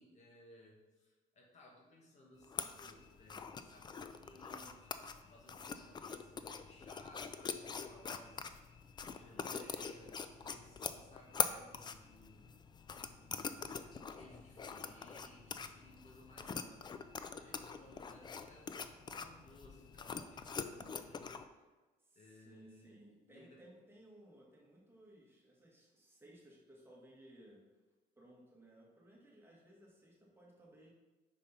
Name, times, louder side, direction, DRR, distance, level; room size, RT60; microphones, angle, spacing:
voice 1, 0.0-4.9 5.3-8.6 9.0-12.5 13.1-16.6 17.2-21.7 22.1-23.6, left 1 dB, 45° left, -1 dB, 1.5 m, -61 dB
sound 1, 2.4-21.4, left 5 dB, 25° left, 0.4 m, -44 dB
voice 2, 16.3-16.9 22.0-27.6 28.1-30.9, right 1 dB, 15° right, -3 dB, 1.7 m, -60 dB
5.6 x 5.1 x 4.1 m, 1.2 s
cardioid pair, 110°, 17 cm